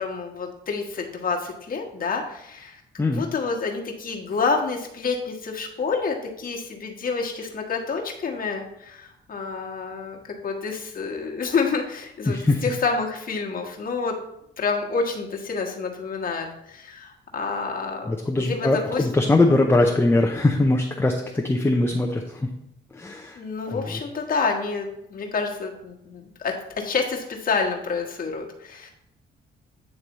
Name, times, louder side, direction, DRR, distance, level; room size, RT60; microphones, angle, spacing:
voice 1, 0.0-14.2 14.6-19.0 21.5-21.6 23.4-28.9, left 4 dB, 45° left, 0 dB, 1.4 m, -28 dB
voice 2, 12.3-12.6 18.1-22.5 22.9-23.4 23.7-24.0, left 2 dB, 10° left, 2 dB, 0.6 m, -21 dB
9.0 x 3.2 x 4.1 m, 0.82 s
cardioid pair, 90°, 20 cm